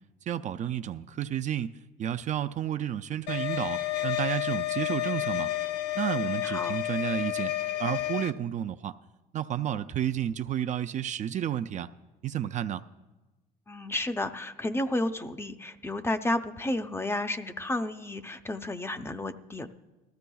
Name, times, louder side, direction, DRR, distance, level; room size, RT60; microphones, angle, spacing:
voice 1, 0.3-5.5 5.9-7.5 7.8-8.9 9.3-11.9 12.2-12.8, right 10 dB, 45° right, 10 dB, 0.4 m, -31 dB
sound 1, 3.3-8.3, left 14 dB, 85° left, 0.5 m, -30 dB
voice 2, 6.2-6.8 13.7-19.7, left 1 dB, 15° left, 9 dB, 0.6 m, -32 dB
18.5 x 14.0 x 2.3 m, 1.1 s
cardioid pair, 110°, 17 cm